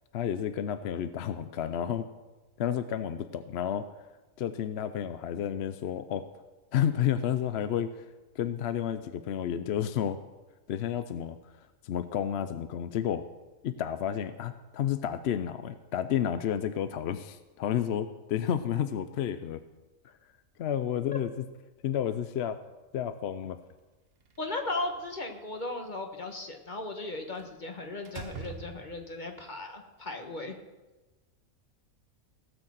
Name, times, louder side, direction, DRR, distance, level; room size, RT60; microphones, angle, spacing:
voice 1, 0.1-2.1 2.6-3.9 4.4-6.3 6.7-7.9 8.4-10.2 10.7-11.4 11.8-13.2 13.6-19.6 20.6-21.3 21.8-22.6 22.9-23.6, left 9 dB, 60° left, 11 dB, 0.7 m, -31 dB
Slam, 24.2-25.2 27.4-27.6 28.0-29.3, right 6 dB, 50° right, 1.0 m, -44 dB
voice 2, 24.4-30.5, left 2 dB, 35° left, 4 dB, 1.3 m, -36 dB
17.5 x 6.6 x 7.3 m, 1.2 s
omnidirectional pair, 1.4 m